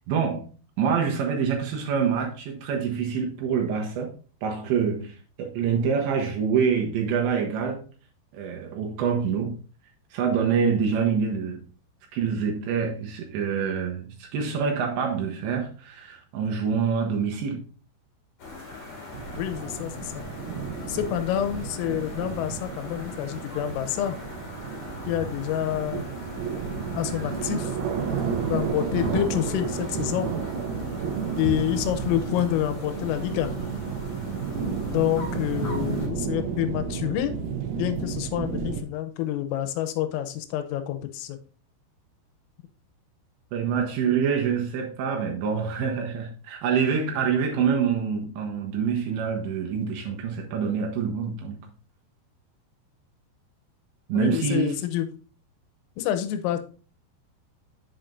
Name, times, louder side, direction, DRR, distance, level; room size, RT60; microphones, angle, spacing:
voice 1, 0.1-0.5 0.8-4.1 4.4-7.8 8.3-9.6 10.1-11.6 12.1-17.6 43.5-51.6 54.1-54.9, right 6 dB, 75° right, 3.0 m, -26 dB
sound 1, 18.4-36.1, left 2 dB, 45° left, 2.5 m, -41 dB
sound 2, 19.1-38.8, right 6 dB, 90° right, 3.8 m, -32 dB
voice 2, 19.4-20.2 20.9-24.2 25.1-26.1 26.9-27.7 28.5-30.3 31.4-33.5 34.9-37.3 37.8-41.4 54.1-55.1 56.0-56.6, left 12 dB, 85° left, 3.4 m, -28 dB
8.8 x 7.7 x 2.6 m
omnidirectional pair, 5.9 m